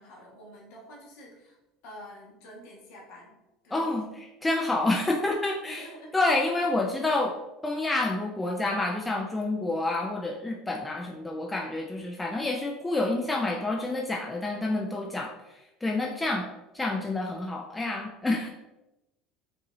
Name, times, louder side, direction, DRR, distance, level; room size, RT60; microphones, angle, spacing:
voice 1, 0.0-1.6 1.8-3.4 3.6-4.0 5.6-6.1, equal, 70° left, -2 dB, 1.4 m, -47 dB
voice 2, 3.7-4.1 4.4-5.9 6.1-7.3 7.6-16.5 16.7-18.5, left 2 dB, 15° left, 0 dB, 0.5 m, -28 dB
5.3 x 2.6 x 3.1 m, 0.95 s
hypercardioid pair, 85°, 0 cm